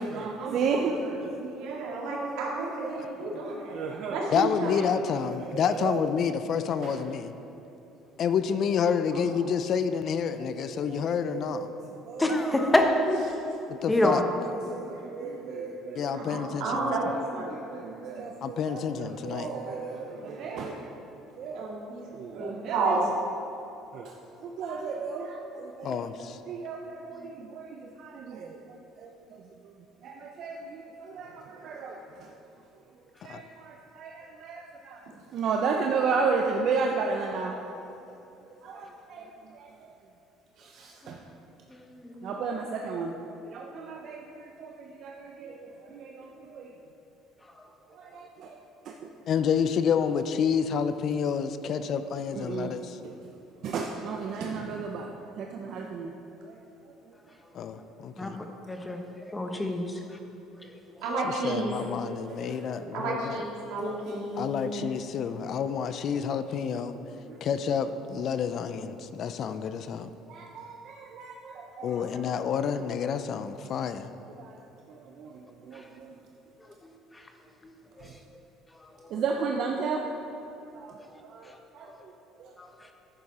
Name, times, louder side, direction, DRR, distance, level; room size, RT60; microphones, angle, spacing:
voice 1, 0.0-1.6 1.9-3.0 3.4-4.2 5.4-6.0 6.5-7.0 10.3-11.7 12.0-12.2 14.5-16.2 16.8-17.2 17.5-20.8 21.4-21.6 22.0-22.8 23.9-24.1 24.4-29.7 30.0-32.3 33.2-35.0 35.3-37.7 38.6-39.7 40.6-41.2 42.2-43.1 43.4-46.7 47.9-48.6 48.8-49.1 52.3-52.7 53.0-53.1 53.6-55.1 55.4-56.1 56.4-56.6 61.9-62.9 67.3-67.4 70.3-72.6 74.4-74.6 74.9-76.1 78.0-78.1 79.1-80.0 80.7-82.1 82.4-82.5, right 5 dB, 55° right, 1 dB, 0.7 m, -34 dB
voice 2, 1.4-3.8 4.0-4.9 13.0-13.2 14.9-15.0 16.1-17.5 21.5-22.0 22.3-23.0 54.3-54.5 61.0-61.8 62.9-64.8, right 3 dB, 80° right, -4 dB, 2.4 m, -31 dB
voice 3, 4.3-7.3 8.2-11.7 13.7-14.2 16.0-16.9 18.4-19.5 25.8-26.4 33.3-33.4 49.3-53.0 57.5-58.4 61.2-63.4 64.4-67.0 67.4-70.1 71.8-74.1, left 7 dB, 50° left, 11 dB, 0.5 m, -29 dB
voice 4, 12.2-12.9 13.9-14.2 27.1-27.3 41.0-41.2 41.7-42.3 58.2-59.0 59.3-60.0 75.7-75.8 76.8-77.2 77.6-77.7 78.0-78.1 79.0-79.1 81.5-81.6 82.6-82.7, left 1 dB, 10° left, 4 dB, 0.9 m, -28 dB
10.5 x 8.8 x 4.2 m, 3.0 s
cardioid pair, 120°, 0 cm